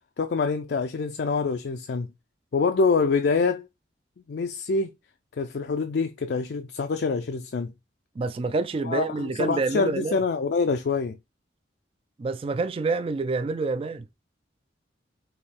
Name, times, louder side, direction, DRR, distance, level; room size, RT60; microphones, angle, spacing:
voice 1, 0.2-2.1 2.5-3.7 4.3-4.9 5.4-7.7 8.8-11.2, left 4 dB, 60° left, 0.4 m, -25 dB
voice 2, 8.2-10.2 12.2-14.0, right 3 dB, 30° right, 0.3 m, -27 dB
3.6 x 2.7 x 4.1 m
head